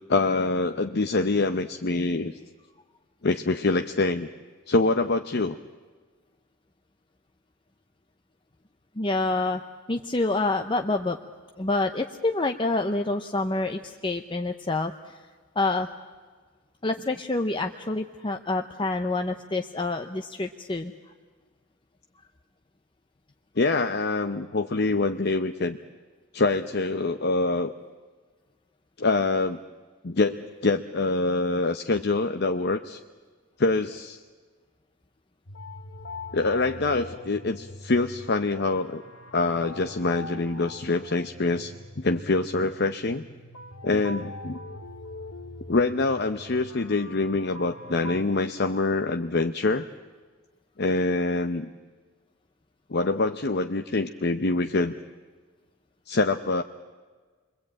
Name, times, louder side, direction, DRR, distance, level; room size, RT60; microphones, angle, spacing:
voice 1, 0.1-2.3 3.2-4.3 4.7-5.6 23.6-25.8 26.3-27.7 29.0-29.6 30.0-33.0 33.6-34.2 36.3-39.0 39.3-43.2 43.8-44.6 45.7-49.9 50.8-51.7 52.9-54.9 56.1-56.6, left 3 dB, 50° left, 7 dB, 0.8 m, -25 dB
voice 2, 8.9-9.6 9.9-11.2 11.6-15.3 15.5-15.9 16.8-21.1 22.2-22.3, left 2 dB, 20° left, 5 dB, 0.8 m, -27 dB
sound 1, 35.5-48.2, left 2 dB, 65° left, 1.4 m, -43 dB
28.5 x 22.5 x 8.8 m, 1.5 s
head